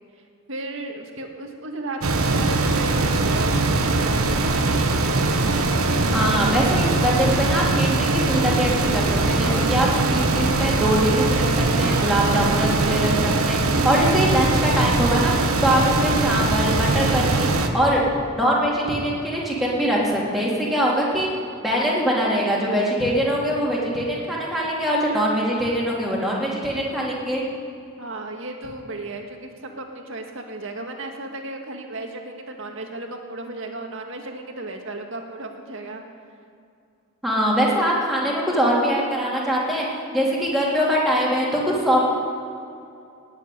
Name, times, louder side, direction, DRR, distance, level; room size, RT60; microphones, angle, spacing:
voice 1, 0.5-4.8 9.3-9.7 16.0-16.4 28.0-36.0, right 2 dB, 60° right, 3 dB, 1.9 m, -35 dB
sound 1, 2.0-17.7, right 3 dB, 75° right, 1.3 m, -21 dB
voice 2, 6.1-18.0 18.4-21.3 21.6-27.4 37.2-39.9 40.1-42.0, equal, ahead, -6 dB, 3.3 m, -22 dB
18.0 x 7.6 x 9.5 m, 2.5 s
head